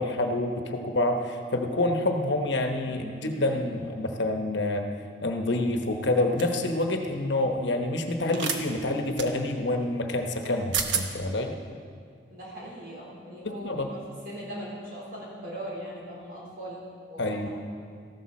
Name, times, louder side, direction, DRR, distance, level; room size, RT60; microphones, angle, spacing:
voice 1, 0.0-4.8 5.2-11.5 13.4-13.9 17.2-17.5, left 2 dB, 65° left, 4 dB, 1.0 m, -27 dB
voice 2, 2.8-3.7 12.3-17.5, equal, 50° right, -5 dB, 4.1 m, -40 dB
sound 1, 6.4-6.6 8.3-8.6 9.2-9.3 10.4-10.5 10.7-11.1, right 7 dB, 75° right, 0.9 m, -29 dB
14.0 x 12.5 x 4.3 m, 2.1 s
head